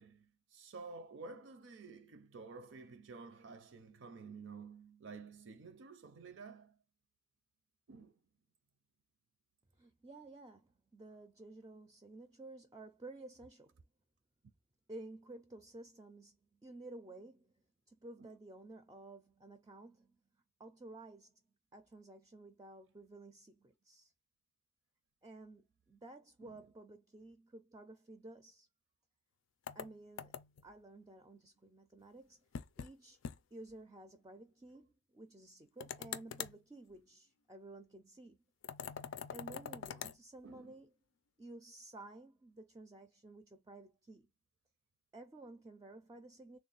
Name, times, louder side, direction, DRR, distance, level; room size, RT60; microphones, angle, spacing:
voice 1, 0.0-6.8 7.9-8.2 18.2-18.3 26.4-26.6 40.4-40.8, right 4 dB, 75° right, 0.5 m, -51 dB
voice 2, 9.8-13.8 14.9-17.5 17.9-20.2 20.6-21.4 21.7-24.1 25.2-28.7 29.7-30.4 30.6-32.4 32.8-33.2 33.5-38.4 39.1-40.9 41.4-44.3 45.1-46.6, right 2 dB, 20° right, 0.4 m, -53 dB
sound 1, 29.7-30.7 32.5-32.9 33.2-33.4 33.7-33.8 35.8-36.6 38.6-40.2, left 7 dB, 75° left, 0.4 m, -44 dB
3.5 x 2.3 x 3.9 m
head